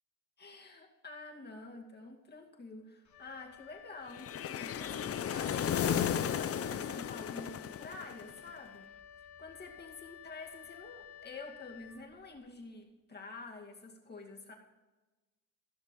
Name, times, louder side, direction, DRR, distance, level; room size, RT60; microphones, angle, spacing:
voice 1, 0.4-8.9 9.2-14.5, left 3 dB, 35° left, 1 dB, 2.4 m, -48 dB
Wind instrument woodwind instrument, 3.0-12.5, left 9 dB, 75° left, 2.1 m, -53 dB
sound 1, 4.2-8.4, left 9 dB, 50° left, 0.7 m, -34 dB
16.0 x 6.6 x 5.4 m, 1.2 s
cardioid pair, 90°, 30 cm